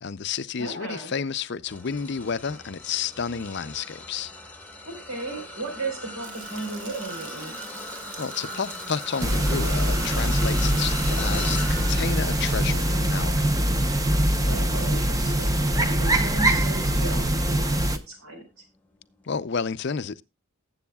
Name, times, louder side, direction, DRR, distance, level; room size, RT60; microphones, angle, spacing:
voice 1, 0.0-4.3 8.2-13.5 19.2-20.2, left 6 dB, 50° left, 0.5 m, -31 dB
voice 2, 0.6-1.1 4.8-7.6 14.4-17.6 17.9-18.6, right 3 dB, 80° right, 4.3 m, -35 dB
sound 1, 1.7-17.2 17.7-18.0 19.2-19.3, left 2 dB, 5° left, 1.1 m, -40 dB
Rain, 6.2-12.9, right 4 dB, 60° right, 2.2 m, -44 dB
sound 2, 9.2-18.0, right 1 dB, 15° right, 0.7 m, -23 dB
19.0 x 7.9 x 2.3 m
head